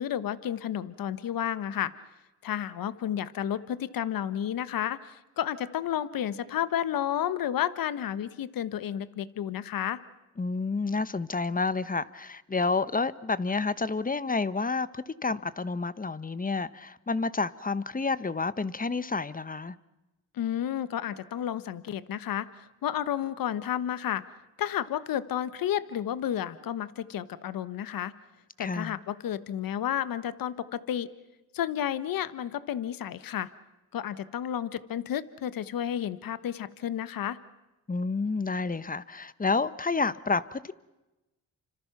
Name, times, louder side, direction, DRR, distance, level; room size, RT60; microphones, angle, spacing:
voice 1, 0.0-1.9 2.4-10.0 20.3-22.5 22.8-24.2 24.6-28.1 28.6-31.1 31.5-33.5 33.9-37.4, left 10 dB, 70° left, 1.2 m, -31 dB
voice 2, 10.4-19.7 28.6-29.0 37.9-40.7, left 4 dB, 25° left, 1.1 m, -29 dB
29.5 x 25.5 x 6.0 m
supercardioid pair, 60°, 35 cm